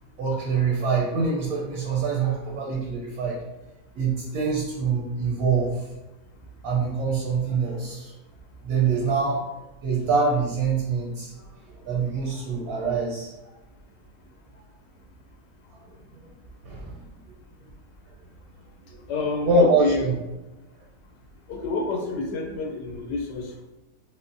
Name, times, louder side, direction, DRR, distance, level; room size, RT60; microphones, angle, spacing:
voice 1, 0.2-3.4 4.0-5.8 6.6-8.1 8.6-9.5 9.8-13.3 16.1-16.3 16.6-17.0 18.9-19.0 19.4-20.1, right 4 dB, 70° right, -2 dB, 1.0 m, -25 dB
voice 2, 19.1-20.1 21.5-23.7, left 3 dB, 85° left, 2 dB, 1.2 m, -28 dB
3.7 x 2.1 x 2.5 m, 1.0 s
omnidirectional pair, 1.8 m